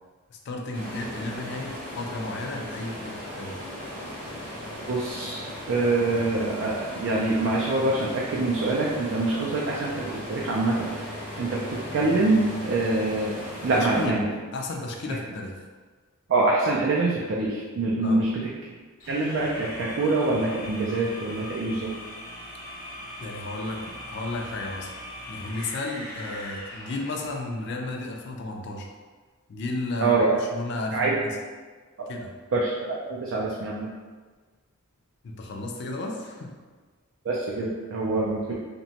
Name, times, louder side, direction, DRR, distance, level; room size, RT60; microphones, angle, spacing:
voice 1, 0.3-3.6 13.7-15.6 18.0-18.2 23.2-24.9 25.3-28.9 29.5-31.4 32.1-32.3 35.2-36.5, left 2 dB, 55° left, 1 dB, 0.3 m, -33 dB
sound 1, 0.7-14.1, equal, 5° left, 0.6 m, -37 dB
voice 2, 4.9-5.4 5.7-14.3 16.3-18.3 19.1-21.9 30.0-30.4 30.9-31.2 32.0-32.1 32.5-33.9 37.2-38.5, right 2 dB, 60° right, -4 dB, 0.3 m, -25 dB
sound 2, 19.0-27.5, left 1 dB, 85° left, 0.8 m, -40 dB
2.8 x 2.2 x 2.7 m, 1.4 s
head